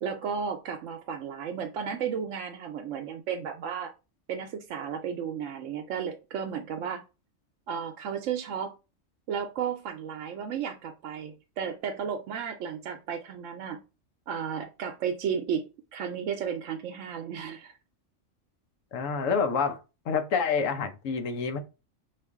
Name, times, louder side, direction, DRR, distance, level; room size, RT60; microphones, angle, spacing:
voice 1, 0.0-3.9 4.3-7.0 7.7-8.7 9.3-13.8 14.3-15.6 15.9-17.8, right 7 dB, 80° right, 0.9 m, -33 dB
voice 2, 18.9-19.8 20.1-21.6, left 5 dB, 85° left, 1.1 m, -27 dB
4.8 x 2.5 x 3.5 m
omnidirectional pair, 1.3 m